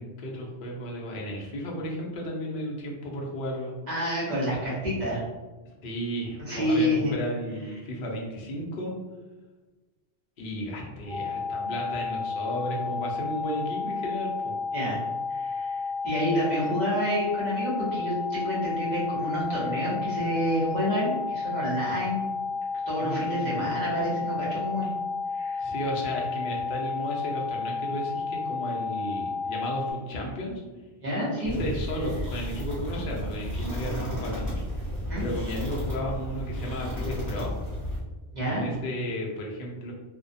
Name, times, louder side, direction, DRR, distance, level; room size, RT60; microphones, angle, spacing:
voice 1, 0.0-3.7 5.8-8.9 10.4-14.5 23.0-23.6 25.6-30.6 31.4-34.6 35.2-37.5 38.4-39.9, equal, 55° left, -1 dB, 0.6 m, -34 dB
voice 2, 3.9-5.2 6.4-7.2 14.7-15.0 15.3-22.2 22.9-24.9 25.3-25.7 31.0-31.6 35.1-35.3 38.3-38.7, equal, 40° right, -8 dB, 0.9 m, -28 dB
sound 1, 11.0-29.9, left 4 dB, 10° right, 0.6 m, -32 dB
sound 2, 31.4-38.0, equal, 25° right, 1.2 m, -33 dB
2.6 x 2.1 x 2.5 m, 1.2 s
omnidirectional pair, 1.3 m